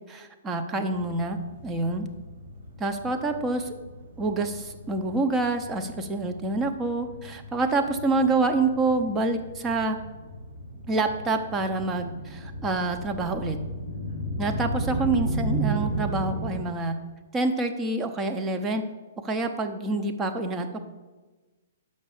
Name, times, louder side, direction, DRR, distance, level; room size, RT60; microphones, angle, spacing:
voice 1, 0.1-2.1 2.8-3.7 4.2-10.0 10.9-13.6 14.4-16.9 17.3-18.8 19.2-20.8, right 3 dB, 20° right, 6 dB, 0.7 m, -27 dB
sound 1, 0.9-16.6, right 1 dB, 80° right, 2.0 m, -35 dB
6.2 x 5.3 x 6.9 m, 1.2 s
hypercardioid pair, 130°, 0 cm